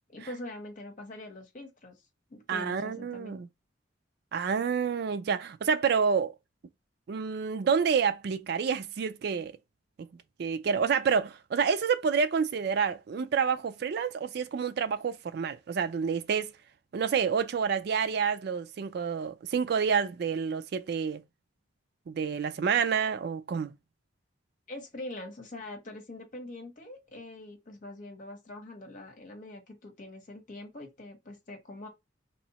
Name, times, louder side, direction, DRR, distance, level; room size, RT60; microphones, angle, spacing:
voice 1, 0.1-1.9 2.3-3.3 24.7-31.9, left 1 dB, 45° left, 1.2 m, -43 dB
voice 2, 2.5-3.5 4.3-6.4 7.1-9.6 10.4-16.5 16.9-21.2 22.1-23.7, right 6 dB, 60° right, 0.3 m, -28 dB
3.0 x 2.7 x 4.1 m
head